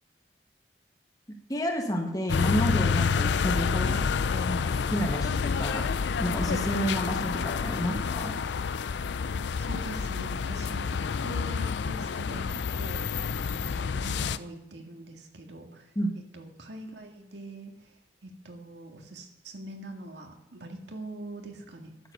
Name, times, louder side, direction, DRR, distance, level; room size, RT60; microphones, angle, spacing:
voice 1, 1.5-5.9 6.2-8.4 15.9-16.1, equal, 20° left, 3 dB, 1.5 m, -30 dB
sound 1, 2.3-14.4, left 5 dB, 75° left, 0.4 m, -29 dB
voice 2, 9.3-15.9 16.3-21.9, right 1 dB, 80° right, 3 dB, 1.9 m, -43 dB
11.5 x 7.6 x 6.7 m, 0.88 s
head